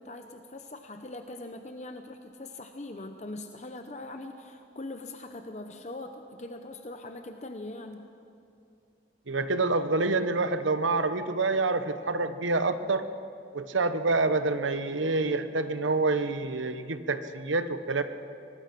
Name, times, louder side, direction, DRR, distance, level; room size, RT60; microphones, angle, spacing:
voice 1, 0.0-8.1, left 2 dB, 35° left, 6 dB, 0.8 m, -41 dB
voice 2, 9.3-13.0 13.5-18.0, right 3 dB, 90° right, 10 dB, 1.0 m, -27 dB
23.5 x 19.0 x 6.0 m, 2.6 s
head